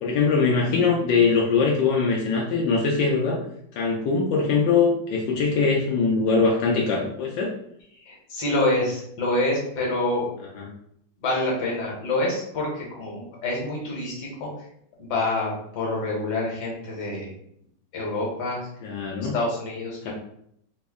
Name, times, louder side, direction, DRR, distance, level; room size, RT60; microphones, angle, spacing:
voice 1, 0.0-3.4 3.7-7.5 10.6-10.7 18.8-19.4 20.0-20.1, left 4 dB, 85° left, -1 dB, 1.3 m, -22 dB
voice 2, 8.0-10.3 11.2-14.5 15.0-17.3 17.9-18.7 19.2-20.1, left 2 dB, 65° left, -3 dB, 1.6 m, -27 dB
3.6 x 2.1 x 3.5 m, 0.70 s
omnidirectional pair, 1.9 m